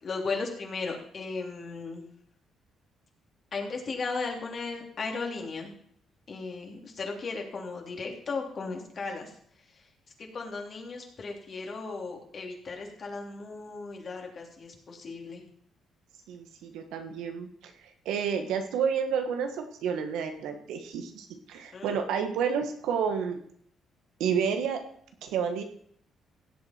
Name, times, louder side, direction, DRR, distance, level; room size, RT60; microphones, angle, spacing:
voice 1, 0.0-2.0 3.5-5.7 6.3-9.3 10.2-15.4 21.7-22.1, left 4 dB, 45° left, 1 dB, 3.2 m, -36 dB
voice 2, 16.3-17.7 18.0-23.4 24.2-24.8 25.2-25.6, right 7 dB, 90° right, 6 dB, 1.6 m, -30 dB
16.5 x 8.2 x 4.5 m, 0.64 s
cardioid pair, 90°, 0 cm